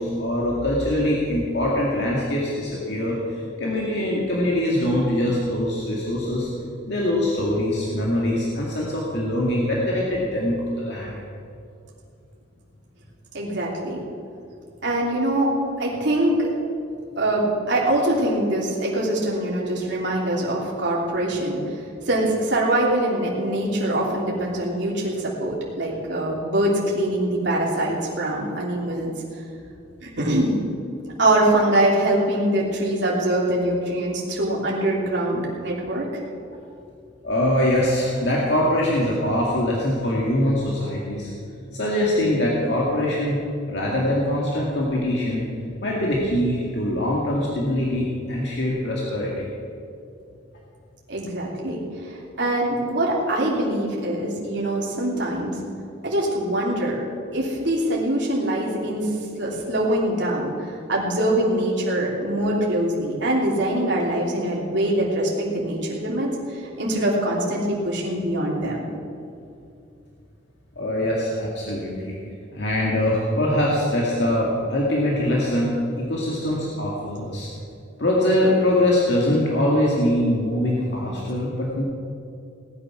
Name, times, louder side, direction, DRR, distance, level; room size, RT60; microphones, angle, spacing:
voice 1, 0.0-6.5 6.9-11.2 37.2-41.3 41.7-43.4 43.7-45.5 45.8-49.5 70.8-72.2 72.5-75.8 76.1-77.5 78.0-81.8, left 1 dB, 60° left, -4 dB, 2.2 m, -23 dB
voice 2, 13.3-14.0 14.8-16.6 17.2-21.6 22.1-29.1 30.0-30.5 31.2-36.1 51.1-55.6 56.0-57.0 57.3-59.1 59.4-60.5 60.9-68.8, right 1 dB, 65° right, -4 dB, 3.0 m, -23 dB
18.5 x 9.9 x 6.2 m, 2.5 s
head